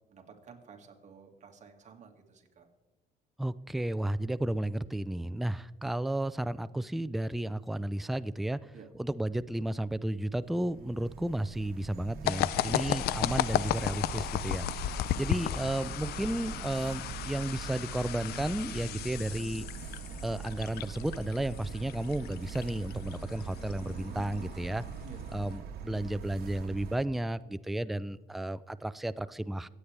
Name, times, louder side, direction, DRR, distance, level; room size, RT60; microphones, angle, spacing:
voice 1, 0.1-2.7 8.7-8.9 12.6-13.3 25.0-25.5, right 6 dB, 45° right, 3 dB, 1.9 m, -53 dB
voice 2, 3.4-8.6 9.0-19.7 20.2-24.8 25.3-29.7, right 1 dB, ahead, 15 dB, 0.3 m, -33 dB
sound 1, 10.4-27.0, right 7 dB, 65° right, 1.3 m, -42 dB
sound 2, 12.3-25.6, left 13 dB, 70° left, 0.4 m, -35 dB
25.0 x 8.6 x 3.4 m, 1.1 s
cardioid pair, 110°, 17 cm